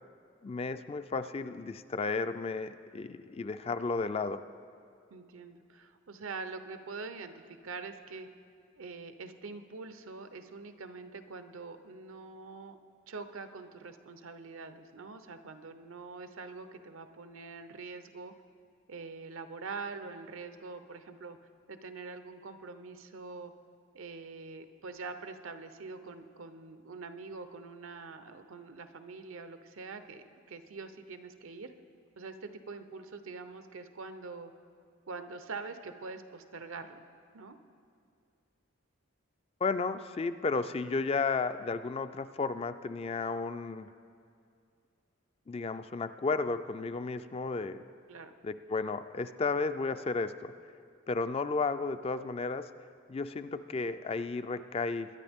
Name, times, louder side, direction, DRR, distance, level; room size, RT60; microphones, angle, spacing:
voice 1, 0.4-4.4 39.6-43.9 45.5-47.8 48.4-50.5 51.1-52.7 53.1-55.1, left 4 dB, 30° left, 11 dB, 0.3 m, -33 dB
voice 2, 5.1-8.3 8.8-12.8 13.1-18.3 18.9-21.4 21.7-23.5 23.9-31.7 32.2-34.5 35.1-37.0 37.3-37.6 48.1-48.4, right 4 dB, 85° right, 9 dB, 0.8 m, -44 dB
21.5 x 10.5 x 3.6 m, 2.4 s
head